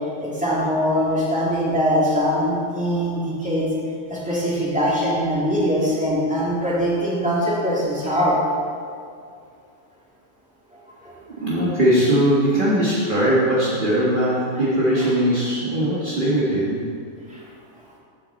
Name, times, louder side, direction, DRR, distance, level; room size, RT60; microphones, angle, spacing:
voice 1, 0.2-3.7 4.1-8.4 11.0-11.1 15.0-15.1 17.3-17.4, equal, 5° right, -8 dB, 2.7 m, -22 dB
voice 2, 11.4-16.8, right 1 dB, 40° right, -9 dB, 1.7 m, -20 dB
15.0 x 5.9 x 4.2 m, 2.3 s
omnidirectional pair, 1.3 m